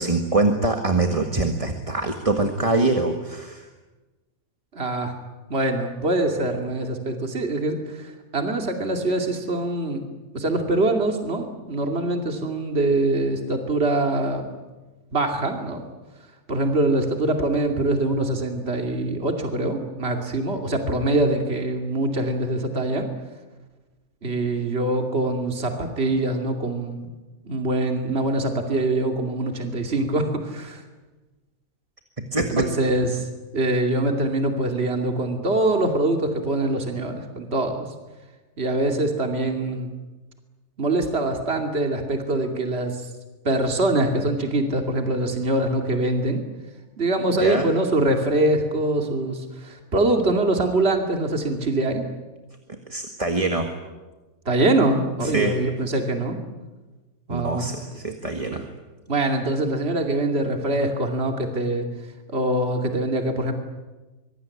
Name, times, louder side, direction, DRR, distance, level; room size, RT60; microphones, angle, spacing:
voice 1, 0.0-3.7 32.3-32.7 47.4-47.7 52.7-53.7 55.2-55.6 57.3-58.7, right 2 dB, 25° right, 4 dB, 1.8 m, -24 dB
voice 2, 4.7-5.1 5.5-10.0 10.3-14.5 15.1-15.8 16.5-23.1 24.2-27.0 27.5-30.8 32.3-33.3 33.5-37.9 38.6-39.9 40.8-43.1 43.4-46.4 47.0-52.0 54.5-56.4 57.3-57.7 59.1-61.9 62.3-63.5, right 2 dB, 45° right, 4 dB, 2.9 m, -24 dB
24.5 x 23.5 x 9.8 m, 1.2 s
omnidirectional pair, 1.5 m